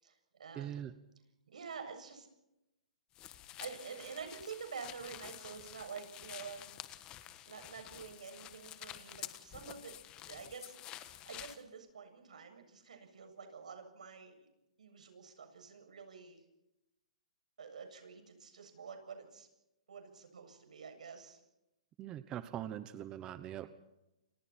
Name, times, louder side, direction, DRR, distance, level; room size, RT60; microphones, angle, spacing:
voice 1, 0.0-0.8 1.5-2.3 3.6-6.8 7.5-14.5 14.8-16.4 17.6-19.5 19.9-21.4, right 6 dB, 85° right, 5 dB, 7.6 m, -48 dB
voice 2, 0.5-0.9 22.0-23.7, right 11 dB, 20° right, 12 dB, 1.0 m, -42 dB
sound 1, 3.2-11.6, left 13 dB, 20° left, 1.3 m, -50 dB
29.0 x 26.0 x 4.5 m, 0.91 s
hypercardioid pair, 160°, 4 cm